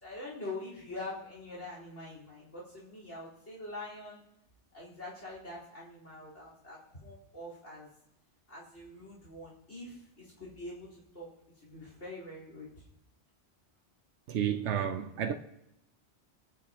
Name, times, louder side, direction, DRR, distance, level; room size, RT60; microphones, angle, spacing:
voice 1, 0.0-4.2 4.7-7.9 8.5-11.3 11.6-12.7, left 2 dB, 85° left, 4.8 m, -44 dB
voice 2, 14.3-15.3, right 9 dB, 80° right, 1.0 m, -31 dB
24.5 x 9.9 x 3.0 m
omnidirectional pair, 1.2 m